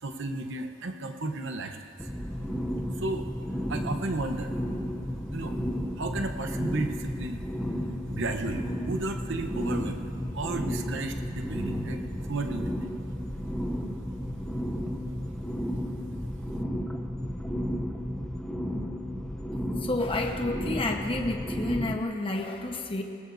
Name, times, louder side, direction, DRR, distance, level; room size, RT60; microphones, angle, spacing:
voice 1, 0.0-2.1 3.0-3.3 3.7-4.5 5.3-5.5 6.0-7.4 8.1-10.1 10.3-12.0 12.3-12.6, right 2 dB, 65° right, 6 dB, 0.9 m, -33 dB
sound 1, 2.0-22.0, equal, 5° left, 0.7 m, -33 dB
voice 2, 19.8-23.0, left 2 dB, 25° left, 2 dB, 1.1 m, -30 dB
22.0 x 18.5 x 2.7 m, 2.6 s
head